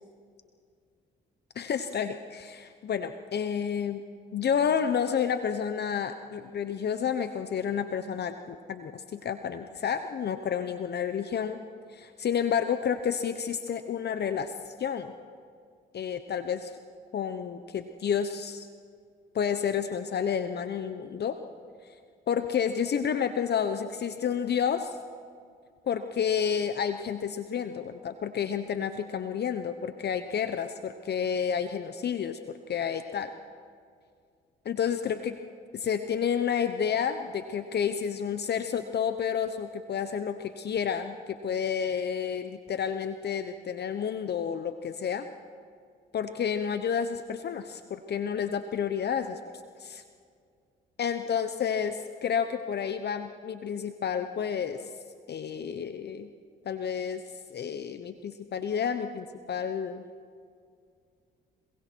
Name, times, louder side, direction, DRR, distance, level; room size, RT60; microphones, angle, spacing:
voice 1, 1.5-4.0 4.3-11.6 11.9-15.1 15.9-16.8 17.1-18.7 19.3-21.4 21.8-22.0 22.3-25.0 25.9-33.3 34.6-35.4 35.7-45.3 46.1-49.4 49.8-50.0 51.0-54.9 55.3-56.3 56.6-57.2 57.5-60.0, left 7 dB, 55° left, 9 dB, 1.0 m, -30 dB
26.5 x 22.5 x 4.7 m, 2.2 s
supercardioid pair, 65°, 20 cm